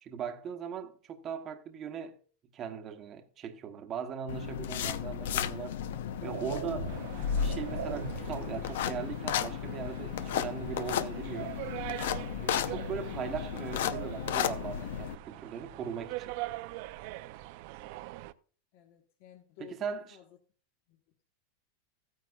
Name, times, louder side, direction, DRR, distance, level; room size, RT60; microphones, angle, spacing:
voice 1, 0.0-2.2 2.5-5.8 6.2-11.5 12.4-16.3 19.6-20.1, right 7 dB, 25° right, 1.0 m, -39 dB
sound 1, 4.3-15.1, left 9 dB, 75° left, 0.7 m, -34 dB
sound 2, 4.8-5.0 5.7-8.5, right 8 dB, 90° right, 1.9 m, -41 dB
sound 3, 6.9-18.3, right 17 dB, 50° right, 0.5 m, -43 dB
voice 2, 18.7-20.4 20.9-21.0, left 10 dB, 50° left, 1.3 m, -53 dB
15.0 x 9.2 x 2.4 m
supercardioid pair, 165°, 0 cm